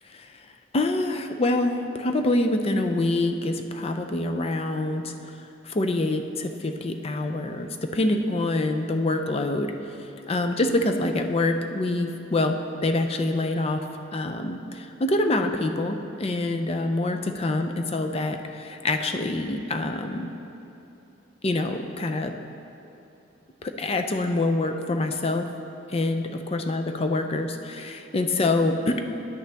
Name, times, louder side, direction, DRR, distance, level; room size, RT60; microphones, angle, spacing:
voice 1, 0.7-5.1 5.6-9.7 10.3-13.8 14.1-20.3 21.4-22.3 23.6-25.5 25.9-29.0, left 2 dB, 30° left, 6 dB, 0.4 m, -26 dB
10.5 x 8.4 x 3.4 m, 2.9 s
head